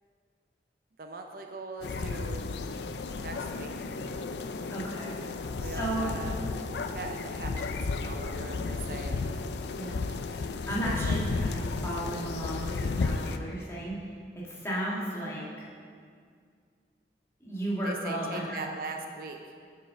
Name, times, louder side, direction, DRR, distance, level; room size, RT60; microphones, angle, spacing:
voice 1, 1.0-2.5 3.2-3.7 5.6-6.4 6.9-9.3 10.1-10.5 10.8-11.2 17.8-19.5, right 3 dB, 55° right, 4 dB, 0.5 m, -41 dB
sound 1, 1.8-13.4, left 3 dB, 75° left, 0.4 m, -33 dB
voice 2, 4.7-5.1 5.6-6.1 9.8-10.0 10.7-14.1 14.5-15.6 17.4-18.7, right 1 dB, 15° left, -7 dB, 1.7 m, -34 dB
7.4 x 5.6 x 5.6 m, 2.1 s
head